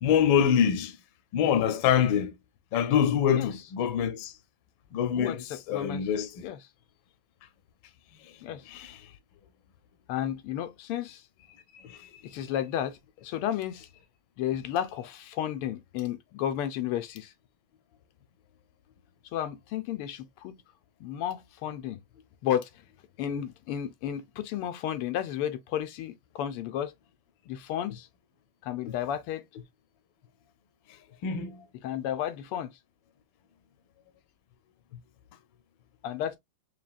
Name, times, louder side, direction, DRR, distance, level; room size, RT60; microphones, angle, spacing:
voice 1, 0.0-0.9 1.3-2.3 2.7-4.3 4.9-5.4 5.7-6.4 8.7-9.0 11.7-12.2 31.2-31.6, left 8 dB, 70° left, 1.4 m, -25 dB
voice 2, 5.2-6.1 6.4-6.6 8.4-8.7 10.1-11.2 12.2-13.9 14.4-17.3 19.3-20.6 21.0-22.0 22.4-22.7 23.2-26.9 27.5-28.1 28.6-29.4 31.8-32.7 36.0-36.4, left 10 dB, 90° left, 1.6 m, -32 dB
4.9 x 2.9 x 2.4 m
omnidirectional pair, 2.4 m